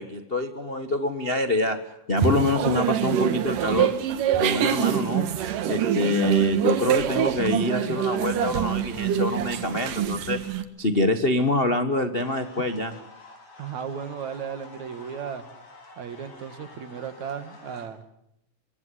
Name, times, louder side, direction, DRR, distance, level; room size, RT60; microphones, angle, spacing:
voice 1, 0.0-1.8 2.1-3.9 4.4-5.3 5.7-10.4 10.8-13.0, left 1 dB, 80° left, 9 dB, 0.5 m, -25 dB
sound 1, 2.2-10.6, right 10 dB, 85° right, 3.1 m, -25 dB
sound 2, 12.2-17.9, left 3 dB, 60° left, 6.6 m, -48 dB
voice 2, 13.6-15.4 16.0-18.0, right 7 dB, 65° right, 11 dB, 3.1 m, -35 dB
25.0 x 23.5 x 9.9 m, 0.75 s
omnidirectional pair, 3.7 m